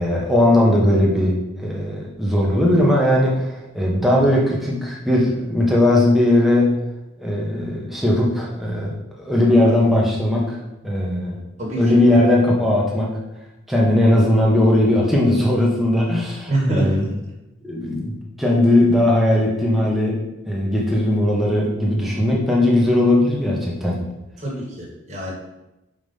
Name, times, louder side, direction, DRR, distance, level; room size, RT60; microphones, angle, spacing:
voice 1, 0.0-6.7 7.2-8.9 9.2-10.6 10.8-11.4 11.8-13.1 13.7-17.1 17.6-20.2 20.5-24.0, left 1 dB, ahead, -4 dB, 1.3 m, -18 dB
voice 2, 11.6-11.9 16.5-17.0 24.4-25.3, right 1 dB, 30° right, -3 dB, 1.9 m, -24 dB
5.5 x 5.0 x 5.5 m, 0.96 s
head